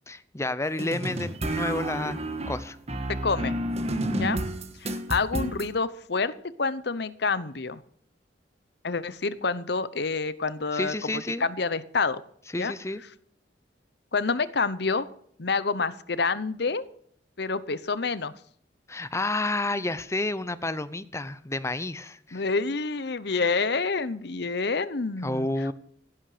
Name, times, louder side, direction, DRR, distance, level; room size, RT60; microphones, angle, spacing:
voice 1, 0.1-2.2 2.5-2.8 10.7-11.4 12.5-13.0 18.9-22.4 25.2-25.7, left 2 dB, 15° left, 15 dB, 0.8 m, -30 dB
sound 1, 0.8-5.7, right 1 dB, 35° right, 1.6 m, -30 dB
voice 2, 3.1-3.6 4.1-4.4 4.8-6.3 6.6-7.8 8.8-12.2 12.6-12.7 14.1-15.1 15.4-16.8 17.4-18.3 22.3-25.7, left 4 dB, 65° left, 16 dB, 0.9 m, -28 dB
15.5 x 12.0 x 5.0 m, 0.62 s
head